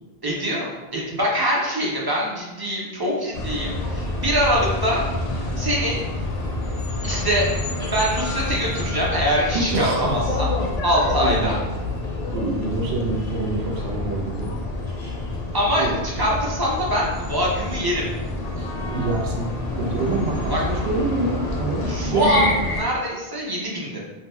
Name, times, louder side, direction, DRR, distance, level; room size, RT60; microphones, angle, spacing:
voice 1, 0.2-5.0 5.6-6.0 7.0-7.5 7.8-10.5 10.8-11.6 15.5-15.9 16.2-18.1 20.5-20.6 21.9-22.5 22.8-24.0, equal, 30° right, -4 dB, 0.4 m, -23 dB
sound 1, 3.3-22.8, left 2 dB, 55° left, 0.5 m, -28 dB
voice 2, 9.5-10.2 11.2-11.5 12.3-14.5 15.8-16.0 18.6-19.5 19.7-22.6, right 3 dB, 90° right, -2 dB, 0.9 m, -26 dB
2.8 x 2.1 x 3.2 m, 1.1 s
omnidirectional pair, 1.0 m